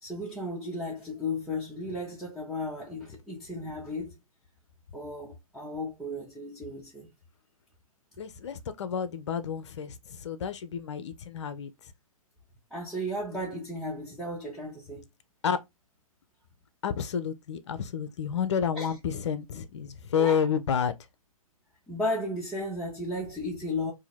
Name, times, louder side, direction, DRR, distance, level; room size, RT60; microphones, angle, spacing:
voice 1, 0.0-4.2 4.9-7.1 12.7-15.0 18.7-18.9 20.2-20.5 21.9-23.9, left 1 dB, ahead, 0.8 m, -34 dB
voice 2, 8.2-11.7 15.4-15.6 16.8-20.9, left 7 dB, 50° left, 0.6 m, -30 dB
2.8 x 2.6 x 4.1 m
figure-of-eight pair, 125°, 18 cm